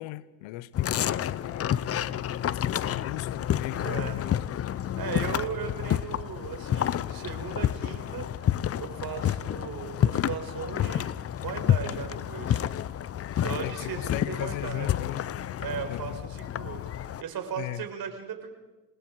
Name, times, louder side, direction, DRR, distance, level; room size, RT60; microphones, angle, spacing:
voice 1, 0.0-1.7 2.4-4.3 13.6-15.2 15.9-16.2 17.6-17.9, left 16 dB, 70° left, 0.9 m, -37 dB
sound 1, 0.7-17.2, left 10 dB, 30° left, 0.6 m, -29 dB
voice 2, 3.8-4.3 5.0-12.6 13.3-14.9 15.6-18.5, right 7 dB, 50° right, 4.6 m, -37 dB
27.5 x 20.0 x 4.7 m
supercardioid pair, 100°, 47 cm